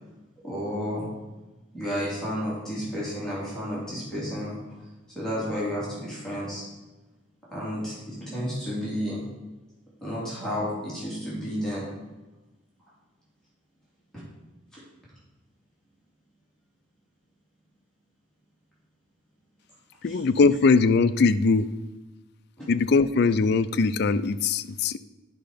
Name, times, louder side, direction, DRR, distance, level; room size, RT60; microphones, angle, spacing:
voice 1, 0.4-1.1 1.7-4.6 5.1-6.6 7.5-9.2 10.0-11.8 14.7-14.8 20.0-20.2 22.6-22.7, equal, 5° left, -9 dB, 3.2 m, -31 dB
voice 2, 20.0-21.7 22.7-25.0, left 4 dB, 60° left, 13 dB, 0.4 m, -21 dB
9.8 x 5.6 x 5.1 m, 1.1 s
head